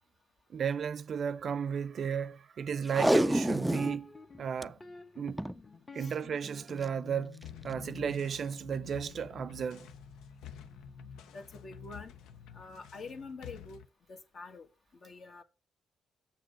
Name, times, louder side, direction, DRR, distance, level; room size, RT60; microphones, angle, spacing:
voice 1, 0.5-4.1 4.4-4.8 5.2-5.4 5.9-9.9, right 7 dB, 60° right, 0.5 m, -34 dB
Packing tape duct tape, 2.9-4.0 4.3-4.4 4.6-4.7 5.3-5.6 6.6-6.8 7.4-7.5, right 1 dB, 5° right, 0.3 m, -27 dB
sound 1, 3.8-13.5, left 4 dB, 35° left, 1.4 m, -52 dB
sound 2, 7.4-13.9, left 9 dB, 80° left, 0.6 m, -50 dB
voice 2, 11.3-12.1 12.5-13.8 14.1-14.7 14.9-15.4, left 4 dB, 55° left, 1.5 m, -46 dB
6.7 x 6.4 x 5.1 m
hypercardioid pair, 45°, 0 cm